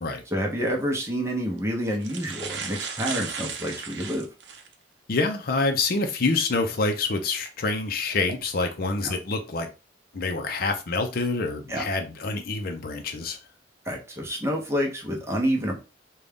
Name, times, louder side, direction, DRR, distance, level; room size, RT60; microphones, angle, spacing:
voice 1, 0.3-4.2 9.0-9.1 11.7-11.9 13.8-15.8, equal, 15° right, 1 dB, 0.7 m, -28 dB
sound 1, 0.6-0.8 1.6-1.7 1.9-4.7 5.3-5.4 7.2-7.5 8.1-8.3, right 6 dB, 70° right, 0.7 m, -35 dB
voice 2, 5.1-9.7 10.1-13.4, left 3 dB, 55° left, 5 dB, 0.6 m, -26 dB
3.8 x 2.3 x 3.5 m, 0.31 s
head